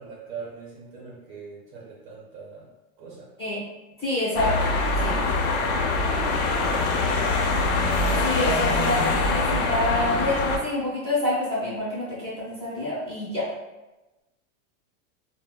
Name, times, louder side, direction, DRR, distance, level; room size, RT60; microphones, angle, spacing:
voice 1, 0.0-2.7 3.0-3.3 5.3-7.4, right 4 dB, 35° right, -3 dB, 0.6 m, -42 dB
voice 2, 4.0-4.7 5.0-5.2 8.2-13.5, left 1 dB, 15° left, -10 dB, 0.6 m, -27 dB
sound 1, 4.4-10.6, left 3 dB, 80° left, 0.6 m, -23 dB
3.9 x 2.1 x 2.2 m, 1.1 s
supercardioid pair, 170°, 41 cm